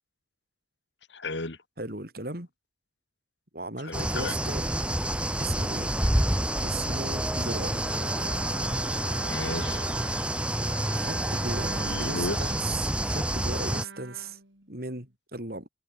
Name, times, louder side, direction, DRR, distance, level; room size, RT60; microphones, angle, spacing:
voice 1, 1.1-1.6 3.8-4.3 9.3-9.8 11.8-12.5, left 2 dB, 80° left, 2.7 m, -34 dB
voice 2, 1.8-2.5 3.5-4.7 5.4-5.9 6.6-7.8 10.9-12.8 13.0-14.4 14.7-15.7, right 2 dB, 55° right, 5.7 m, -37 dB
sound 1, 3.9-13.8, right 1 dB, 5° right, 1.6 m, -28 dB
Bowed string instrument, 7.6-15.0, right 3 dB, 85° right, 6.7 m, -43 dB
head